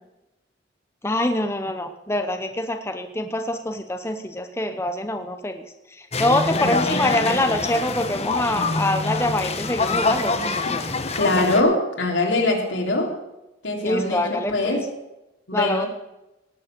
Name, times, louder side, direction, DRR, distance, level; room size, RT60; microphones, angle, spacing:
voice 1, 1.0-5.6 6.0-10.5 13.8-14.8 15.5-15.9, left 1 dB, 15° left, 6 dB, 0.8 m, -25 dB
sound 1, 6.1-11.6, left 3 dB, 35° left, 1.1 m, -25 dB
voice 2, 6.5-7.1 11.1-13.1 13.6-14.8 15.5-15.9, left 2 dB, 90° left, 0 dB, 3.4 m, -23 dB
17.5 x 8.5 x 6.2 m, 0.96 s
head